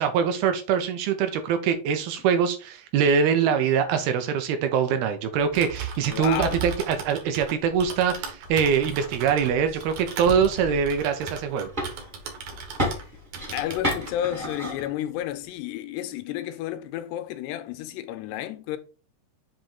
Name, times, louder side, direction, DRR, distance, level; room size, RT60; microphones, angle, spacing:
voice 1, 0.0-11.7, right 7 dB, 80° right, 2.5 m, -23 dB
Typing, 5.4-13.1 13.3-14.2, right 6 dB, 60° right, 2.0 m, -37 dB
voice 2, 6.1-6.7 12.9-13.1 13.5-18.8, left 12 dB, 90° left, 2.8 m, -31 dB
sound 1, 7.6-15.6, left 1 dB, 45° right, 0.6 m, -35 dB
7.7 x 3.1 x 4.4 m
omnidirectional pair, 4.7 m